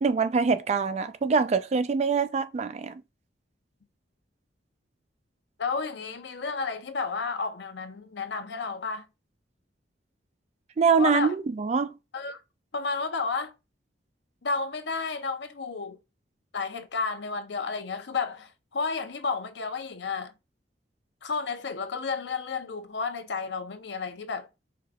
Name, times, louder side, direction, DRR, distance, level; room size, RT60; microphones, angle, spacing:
voice 1, 0.0-3.0 10.8-11.9, right 5 dB, 35° right, 0.3 m, -24 dB
voice 2, 5.6-9.1 11.0-11.4 12.1-12.4 12.7-13.5 14.4-16.0 16.5-20.3 21.2-24.5, left 4 dB, 65° left, 0.7 m, -32 dB
4.7 x 2.3 x 3.4 m
head